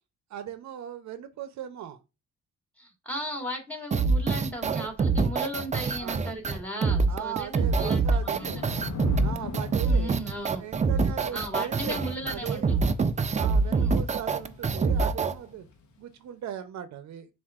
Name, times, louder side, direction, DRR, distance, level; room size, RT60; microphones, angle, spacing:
voice 1, 0.3-2.0 6.0-6.2 7.1-8.6 9.2-10.2 10.5-12.7 13.4-15.6 16.0-17.3, right 9 dB, 65° right, 0.6 m, -38 dB
voice 2, 2.8-8.5 9.8-10.6 11.3-12.8 13.7-14.0, equal, 5° left, 1.6 m, -36 dB
sound 1, 3.9-15.3, right 4 dB, 25° right, 0.4 m, -25 dB
Thunder / Rain, 7.5-15.9, left 4 dB, 70° left, 0.9 m, -40 dB
7.1 x 2.5 x 2.4 m
cardioid pair, 90°, 30 cm